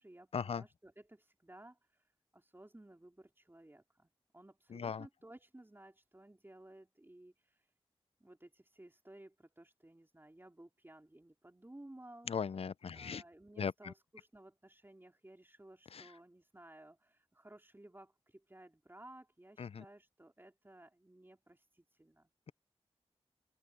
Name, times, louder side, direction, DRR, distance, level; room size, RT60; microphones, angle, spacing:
voice 1, 0.0-7.7 8.2-12.3 12.9-22.3, right 1 dB, 20° right, 3.6 m, -57 dB
voice 2, 4.7-5.0 12.3-13.2 13.6-13.9 15.9-16.0 19.6-19.8, left 6 dB, 65° left, 0.4 m, -38 dB
open air
wide cardioid pair, 65°, 11 cm